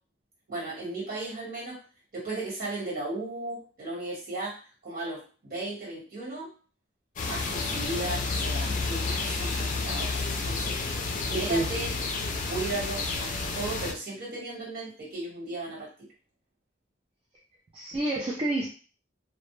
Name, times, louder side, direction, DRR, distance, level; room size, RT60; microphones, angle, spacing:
voice 1, 0.5-1.8 2.1-6.5 7.3-10.8 11.1-11.9 12.5-15.9, right 2 dB, 50° right, -5 dB, 1.4 m, -36 dB
sound 1, 7.2-13.9, left 3 dB, 45° left, 0.4 m, -30 dB
voice 2, 11.3-11.7 17.7-18.7, right 2 dB, 30° right, -2 dB, 0.3 m, -28 dB
2.1 x 2.1 x 3.0 m, 0.37 s
head